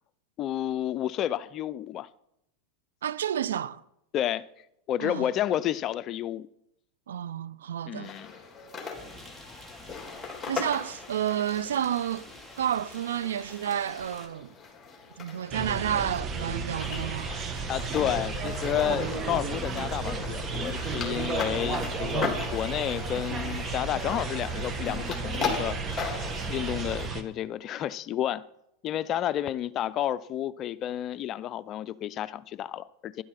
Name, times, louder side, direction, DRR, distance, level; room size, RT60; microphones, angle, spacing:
voice 1, 0.4-2.1 4.1-4.4 4.9-6.5 7.9-8.3 17.7-26.1 26.5-28.4 28.8-33.2, left 11 dB, 40° left, 0.5 m, -31 dB
voice 2, 3.0-3.8 5.0-5.2 7.1-8.1 10.5-12.3 12.6-14.5 15.2-17.3, right 10 dB, 85° right, 0.5 m, -30 dB
sound 1, 8.0-27.1, left 5 dB, 20° left, 3.5 m, -39 dB
sound 2, 8.9-14.3, left 1 dB, 15° right, 3.1 m, -48 dB
sound 3, 15.5-27.2, right 4 dB, 30° right, 1.6 m, -33 dB
11.0 x 11.0 x 5.8 m
hypercardioid pair, 110°, 0 cm